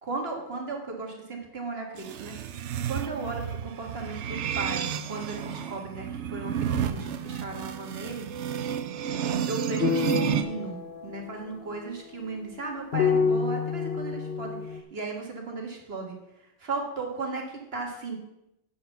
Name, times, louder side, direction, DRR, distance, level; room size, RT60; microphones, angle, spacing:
voice 1, 0.0-8.3 9.1-16.2 16.6-18.2, right 3 dB, 55° right, 1 dB, 1.9 m, -36 dB
sound 1, 2.0-10.4, right 8 dB, 70° right, 0.9 m, -31 dB
sound 2, 9.8-14.8, left 6 dB, 50° left, 0.8 m, -29 dB
7.6 x 5.9 x 6.9 m, 0.87 s
omnidirectional pair, 1.3 m